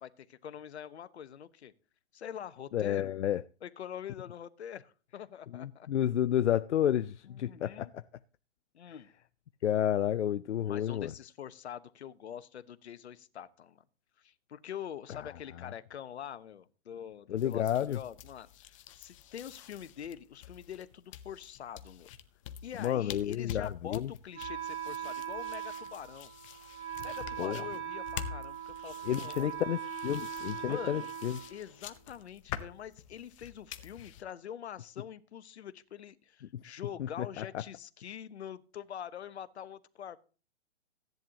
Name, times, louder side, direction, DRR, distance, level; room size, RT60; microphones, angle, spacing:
voice 1, 0.0-1.7 2.1-3.2 3.6-5.9 7.3-7.9 8.7-9.1 10.6-13.8 14.2-22.1 22.6-26.3 27.0-29.6 30.6-31.1 31.5-40.2, left 9 dB, 70° left, 1.0 m, -45 dB
voice 2, 2.7-3.4 5.5-7.9 9.6-11.1 17.3-18.0 22.8-24.1 27.4-27.6 29.0-31.4 36.5-36.6 37.2-37.4, left 10 dB, 85° left, 0.5 m, -30 dB
sound 1, 17.4-34.2, left 10 dB, 30° left, 0.8 m, -47 dB
Wind instrument woodwind instrument, 24.3-32.1, right 9 dB, 80° right, 3.7 m, -40 dB
15.5 x 10.5 x 2.9 m
hypercardioid pair, 150°, 34 cm